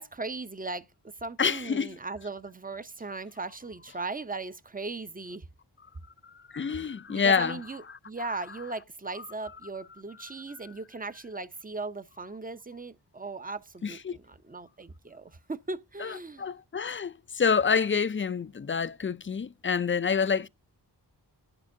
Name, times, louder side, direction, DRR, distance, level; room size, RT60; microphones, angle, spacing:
voice 1, 0.0-5.4 7.1-16.5, right 3 dB, 20° right, 0.6 m, -38 dB
voice 2, 1.4-1.9 6.2-7.6 7.9-8.0 13.8-14.2 16.0-20.5, left 6 dB, 30° left, 0.4 m, -27 dB
11.0 x 8.4 x 2.6 m
cardioid pair, 45°, 42 cm